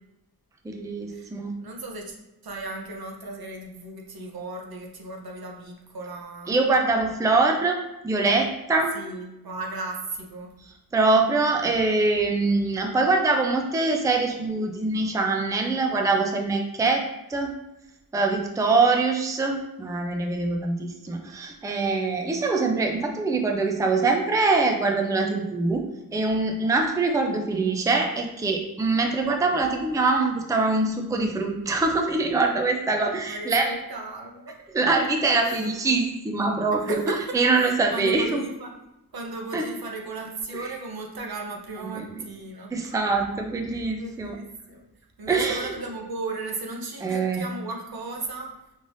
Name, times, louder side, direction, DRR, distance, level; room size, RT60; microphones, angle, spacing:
voice 1, 0.6-1.5 6.5-7.8 8.0-8.9 10.9-17.0 17.3-17.5 18.1-25.8 26.1-33.7 34.7-38.4 39.5-39.7 41.9-42.0 42.7-44.4 45.3-45.7 47.0-47.4, right 3 dB, 10° right, 3 dB, 0.4 m, -23 dB
voice 2, 1.6-2.1 2.4-6.5 8.9-10.5 33.2-34.6 35.3-35.7 36.7-38.7 39.1-42.7 43.7-44.8 45.2-48.6, right 2 dB, 75° right, 1 dB, 0.8 m, -35 dB
5.3 x 3.3 x 2.6 m, 0.92 s
wide cardioid pair, 120°, 38 cm